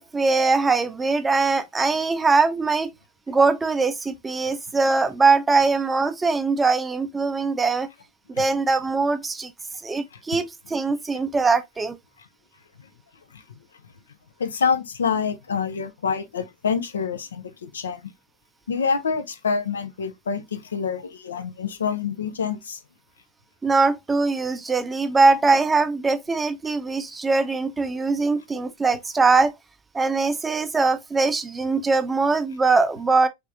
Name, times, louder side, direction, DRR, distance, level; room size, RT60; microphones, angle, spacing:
voice 1, 0.0-2.9 3.3-7.9 8.3-9.5 9.8-12.0 23.6-29.5 29.9-33.3, right 4 dB, 15° right, 0.4 m, -21 dB
voice 2, 14.4-18.1 18.7-22.8, left 6 dB, 70° left, 0.5 m, -27 dB
3.3 x 3.3 x 2.5 m
figure-of-eight pair, 85°, 0 cm